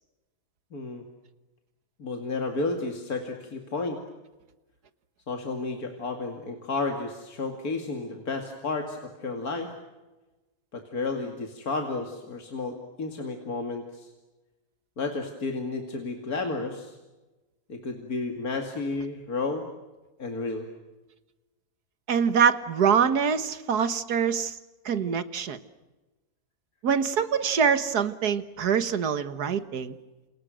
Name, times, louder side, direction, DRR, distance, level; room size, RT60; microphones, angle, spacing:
voice 1, 0.7-1.0 2.0-4.0 5.3-9.7 10.7-14.1 15.0-17.0 17.7-19.7 20.2-20.7, left 3 dB, 70° left, 3 dB, 2.8 m, -32 dB
voice 2, 22.1-24.6 24.9-25.6 26.8-30.0, right 7 dB, 90° right, 12 dB, 2.0 m, -24 dB
30.0 x 28.5 x 6.4 m, 1.1 s
omnidirectional pair, 1.6 m